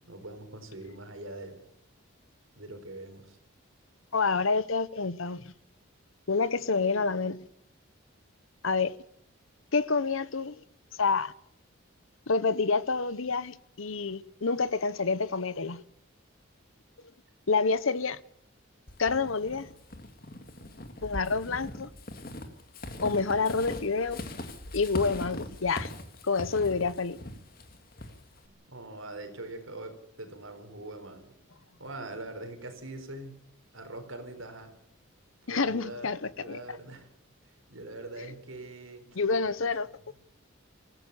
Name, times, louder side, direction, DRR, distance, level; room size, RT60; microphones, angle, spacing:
voice 1, 0.1-1.6 2.6-3.4 28.4-31.3 31.8-33.3 33.7-34.7 35.5-37.1 37.4-39.0 39.4-39.6, right 2 dB, 70° right, 4.4 m, -43 dB
voice 2, 4.1-5.5 6.3-7.4 8.6-9.0 9.7-10.6 10.9-11.3 12.3-15.8 17.5-18.2 19.0-19.7 21.0-21.9 23.0-24.2 24.7-25.9 26.2-27.2 35.5-36.6 39.2-39.9, left 4 dB, 70° left, 0.9 m, -28 dB
Walk footsteps / Squeak, 18.9-28.5, left 1 dB, 45° left, 2.1 m, -41 dB
26.0 x 15.0 x 7.0 m
head